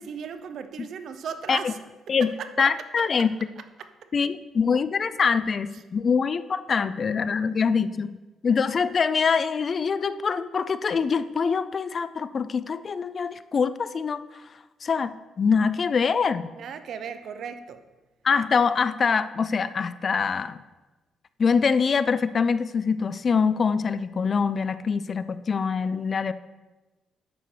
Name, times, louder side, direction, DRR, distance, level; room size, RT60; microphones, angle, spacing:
voice 1, 0.0-1.8 2.1-3.3 3.6-4.1 5.7-5.8 16.6-17.8, right 7 dB, 65° right, 10 dB, 0.6 m, -37 dB
voice 2, 2.6-3.3 4.1-8.1 8.4-14.2 14.8-16.5 18.2-20.6 21.4-26.3, left 5 dB, 45° left, 14 dB, 0.3 m, -24 dB
9.8 x 6.8 x 3.2 m, 1.1 s
cardioid pair, 90°, 0 cm